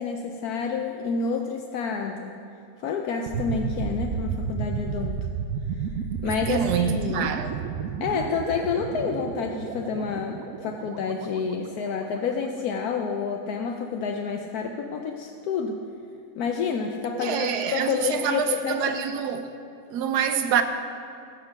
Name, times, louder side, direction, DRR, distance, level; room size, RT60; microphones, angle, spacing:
voice 1, 0.0-2.4 2.8-5.3 5.7-6.0 6.2-7.3 8.0-15.8 16.4-19.0, left 5 dB, 75° left, 1.2 m, -29 dB
sound 1, 3.3-12.1, right 6 dB, 70° right, 1.1 m, -32 dB
voice 2, 6.5-7.6 17.1-19.5 19.9-20.6, right 8 dB, 90° right, 1.3 m, -26 dB
15.0 x 6.7 x 5.8 m
omnidirectional pair, 1.7 m